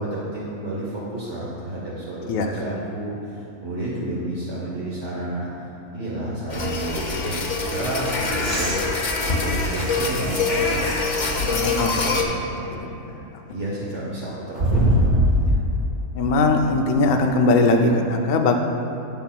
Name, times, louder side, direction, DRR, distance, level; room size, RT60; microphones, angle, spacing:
voice 1, 0.0-13.2 13.5-15.6, right 1 dB, 55° right, -6 dB, 1.2 m, -31 dB
sound 1, 6.5-12.2, left 3 dB, 45° left, 0.6 m, -24 dB
sound 2, 8.4-11.1 11.8-11.9 14.6-15.8 17.6-17.7, equal, 40° right, 0.7 m, -23 dB
voice 2, 11.5-11.9 16.2-18.6, left 3 dB, 90° left, 3 dB, 0.4 m, -19 dB
13.0 x 5.8 x 2.2 m, 3.0 s
omnidirectional pair, 1.5 m